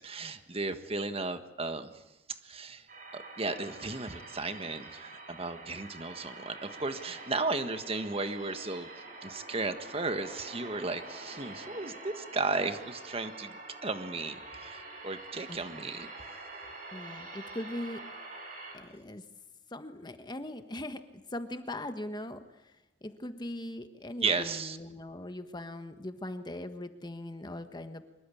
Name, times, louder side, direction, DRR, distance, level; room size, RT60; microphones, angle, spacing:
voice 1, 0.0-1.9 2.3-2.8 3.1-8.9 9.2-13.6 13.8-16.1 24.2-24.8, right 3 dB, 35° right, 9 dB, 1.5 m, -35 dB
sound 1, 2.9-18.7, right 2 dB, 50° right, 6.4 m, -46 dB
voice 2, 15.5-15.9 16.9-18.1 18.7-19.2 19.7-21.0 21.3-22.8 23.0-28.0, left 1 dB, 25° left, 9 dB, 1.4 m, -40 dB
24.5 x 22.5 x 8.6 m, 0.95 s
head